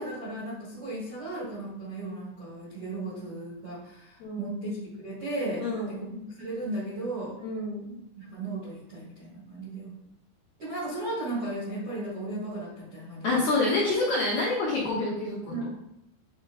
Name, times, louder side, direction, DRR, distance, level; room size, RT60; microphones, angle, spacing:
voice 1, 0.0-7.4 8.1-9.9 10.6-13.5 15.5-15.7, right 1 dB, 60° right, -9 dB, 1.4 m, -35 dB
voice 2, 4.2-4.5 5.6-6.1 7.4-8.0 13.2-15.7, left 2 dB, 75° left, -8 dB, 2.0 m, -28 dB
9.4 x 4.3 x 2.5 m, 0.83 s
omnidirectional pair, 5.3 m